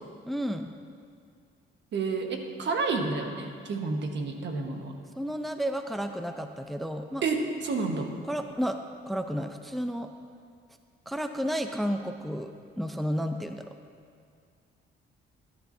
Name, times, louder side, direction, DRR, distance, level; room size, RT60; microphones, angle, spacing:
voice 1, 0.3-0.7 5.2-7.2 8.3-8.8 9.1-10.1 11.1-12.5 12.8-13.7, equal, ahead, 6 dB, 0.5 m, -31 dB
voice 2, 1.9-4.9 7.2-8.1, right 4 dB, 65° right, 3 dB, 1.4 m, -30 dB
18.0 x 10.5 x 2.7 m, 2.2 s
cardioid pair, 90°, 20 cm